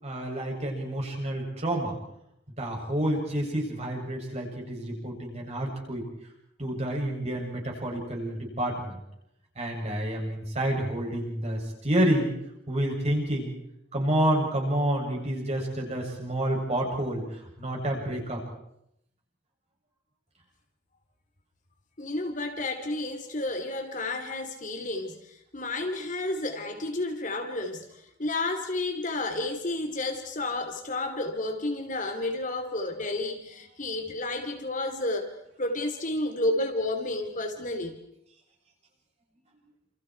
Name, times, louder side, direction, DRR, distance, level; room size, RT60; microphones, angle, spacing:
voice 1, 0.0-2.0 2.6-6.1 6.6-9.0 9.6-12.3 12.7-13.5 13.9-18.4, right 1 dB, 35° right, 0 dB, 7.8 m, -29 dB
voice 2, 22.0-35.3 35.6-38.0, left 2 dB, 40° left, 5 dB, 3.2 m, -31 dB
30.0 x 28.5 x 4.7 m, 0.78 s
head